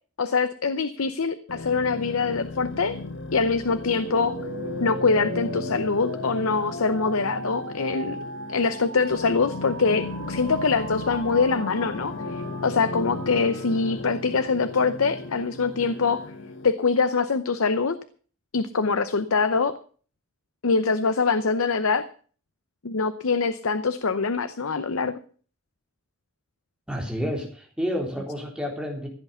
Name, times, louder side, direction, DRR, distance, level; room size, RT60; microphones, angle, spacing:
voice 1, 0.2-3.0 3.3-4.3 4.8-8.2 8.5-16.3 16.6-18.0 18.5-19.7 20.6-22.0 22.8-25.1, left 4 dB, 85° left, 12 dB, 0.8 m, -24 dB
sound 1, 1.5-16.7, left 2 dB, 60° left, 1.4 m, -35 dB
sound 2, 3.9-13.9, right 3 dB, 60° right, 1.9 m, -39 dB
voice 2, 26.9-29.1, equal, 5° right, 1 dB, 3.6 m, -30 dB
15.0 x 8.2 x 6.9 m, 0.43 s
head